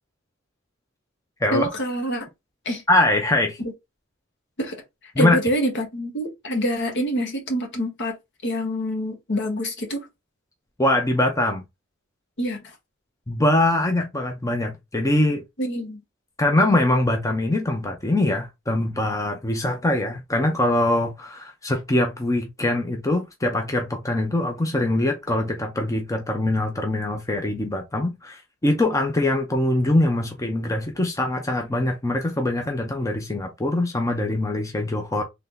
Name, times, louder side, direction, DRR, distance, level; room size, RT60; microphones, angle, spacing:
voice 1, 1.5-2.3 2.6-2.8 3.6-3.7 4.6-8.2 8.4-10.1 12.4-12.7 15.6-16.0, equal, 60° left, 1.2 m, -26 dB
voice 2, 2.9-3.6 5.2-5.4 10.8-11.6 13.3-15.4 16.4-35.2, left 1 dB, 15° left, 0.6 m, -23 dB
3.3 x 2.7 x 3.8 m
head